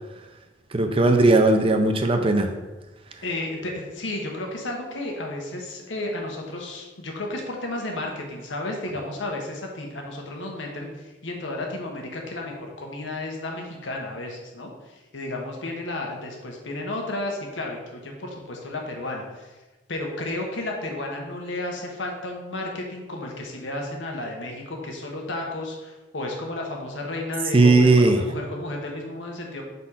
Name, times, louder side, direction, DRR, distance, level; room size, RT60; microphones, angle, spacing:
voice 1, 0.7-2.5 27.5-28.2, right 2 dB, 30° right, 5 dB, 0.5 m, -17 dB
voice 2, 3.2-19.5 19.9-29.6, left 2 dB, 90° left, 1 dB, 1.3 m, -32 dB
4.8 x 4.2 x 5.6 m, 1.2 s
head